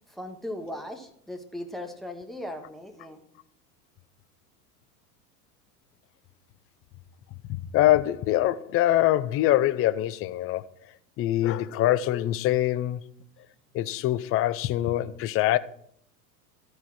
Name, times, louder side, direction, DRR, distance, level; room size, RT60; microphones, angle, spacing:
voice 1, 0.1-3.2, left 1 dB, ahead, 1.5 m, -38 dB
voice 2, 7.7-10.6 11.2-13.0 13.7-15.6, left 14 dB, 30° left, 0.5 m, -24 dB
13.5 x 4.6 x 6.2 m
hypercardioid pair, 85°, 48 cm